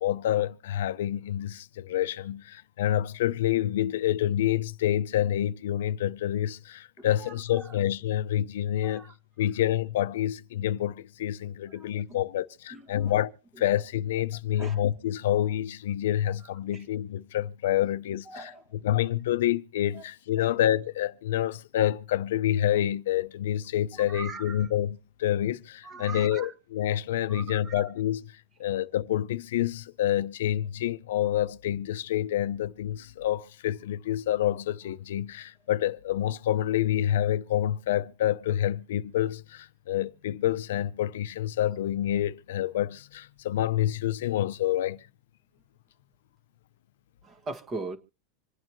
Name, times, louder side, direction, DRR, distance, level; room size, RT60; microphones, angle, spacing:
voice 1, 0.0-9.1 9.4-13.3 13.6-28.2 28.6-45.0, left 12 dB, 85° left, 0.6 m, -28 dB
voice 2, 7.0-7.7 8.8-9.1 11.7-12.2 12.7-13.1 14.6-14.8 16.7-16.8 18.3-18.6 20.4-20.5 24.1-24.7 25.8-26.5 27.3-27.9 47.2-48.0, right 3 dB, 20° right, 1.5 m, -41 dB
26.5 x 8.9 x 3.1 m
supercardioid pair, 155°, 0 cm